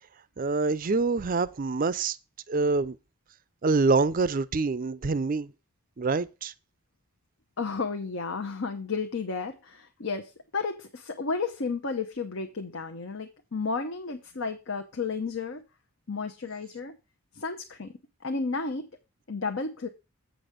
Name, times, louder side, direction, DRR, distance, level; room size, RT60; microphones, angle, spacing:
voice 1, 0.4-2.2 2.5-3.0 3.6-5.5 6.0-6.5, right 3 dB, 40° right, 0.4 m, -25 dB
voice 2, 7.6-15.6 16.1-17.0 17.3-17.9 18.2-18.9 19.3-19.9, left 4 dB, 65° left, 0.9 m, -32 dB
8.3 x 6.1 x 5.0 m
head